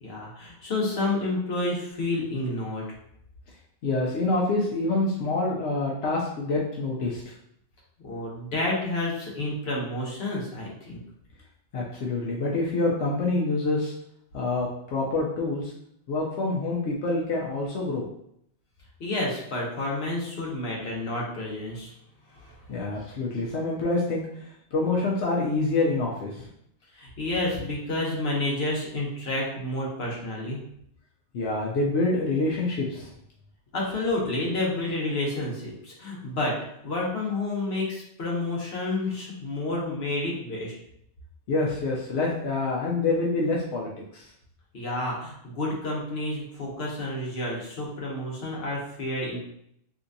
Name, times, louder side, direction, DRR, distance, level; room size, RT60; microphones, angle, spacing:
voice 1, 0.0-2.9 8.0-11.0 19.0-21.9 22.3-22.6 23.0-23.1 26.9-30.6 33.7-36.6 36.8-40.7 44.7-49.4, left 2 dB, 70° left, -3 dB, 1.2 m, -30 dB
voice 2, 3.8-7.3 11.7-13.9 14.3-15.7 16.1-18.0 22.7-26.5 31.3-33.1 41.5-44.2, left 2 dB, 90° left, -3 dB, 0.9 m, -26 dB
3.4 x 2.8 x 2.6 m, 0.72 s
omnidirectional pair, 1.1 m